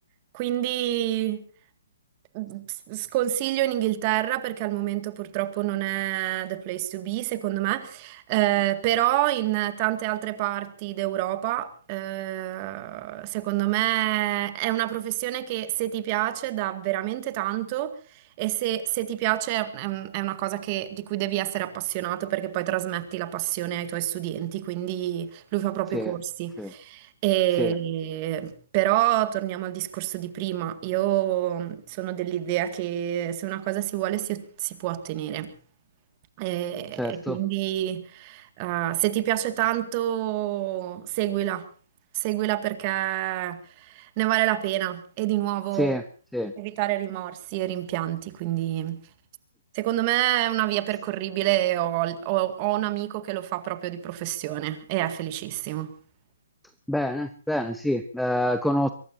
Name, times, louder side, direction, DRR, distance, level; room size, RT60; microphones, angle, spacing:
voice 1, 0.3-1.4 2.3-18.0 18.4-35.5 36.4-41.7 42.1-46.0 46.6-49.0 49.7-55.9, right 14 dB, 25° right, 11 dB, 2.1 m, -27 dB
voice 2, 37.0-37.4 45.8-46.1 46.3-46.5 56.9-58.9, left 1 dB, ahead, 10 dB, 0.8 m, -26 dB
23.5 x 22.5 x 2.7 m, 0.40 s
hypercardioid pair, 170°, 0 cm